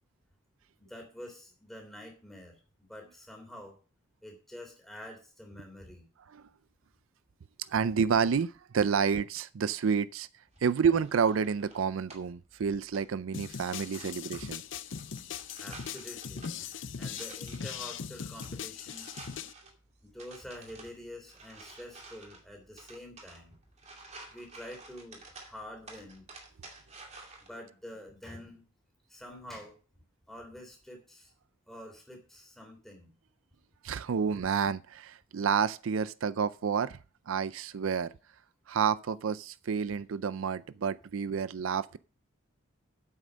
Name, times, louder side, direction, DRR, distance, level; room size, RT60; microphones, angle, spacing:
voice 1, 0.8-3.7 4.2-6.1 15.6-19.2 20.0-23.5 24.3-26.3 27.5-28.6 29.1-29.8 30.3-31.3 31.7-33.1, left 1 dB, ahead, 3.1 m, -47 dB
voice 2, 7.7-10.3 10.6-14.6 33.8-37.0 37.3-38.1 38.7-42.0, right 6 dB, 75° right, 0.4 m, -29 dB
sound 1, 10.5-27.5, right 3 dB, 30° right, 2.4 m, -53 dB
sound 2, 13.3-19.5, left 7 dB, 60° left, 0.6 m, -40 dB
8.5 x 7.8 x 6.3 m
head